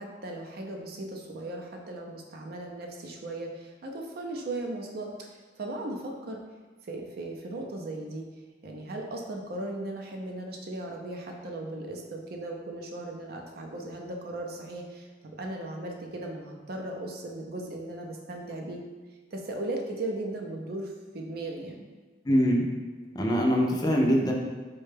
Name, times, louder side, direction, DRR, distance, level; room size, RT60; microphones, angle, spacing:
voice 1, 0.0-6.4 6.8-8.2 8.6-15.1 15.4-18.8 19.3-21.9, right 2 dB, 55° right, 1 dB, 0.5 m, -37 dB
voice 2, 22.3-22.7 23.1-24.3, equal, 20° left, 0 dB, 0.4 m, -23 dB
4.2 x 2.2 x 3.2 m, 1.4 s
head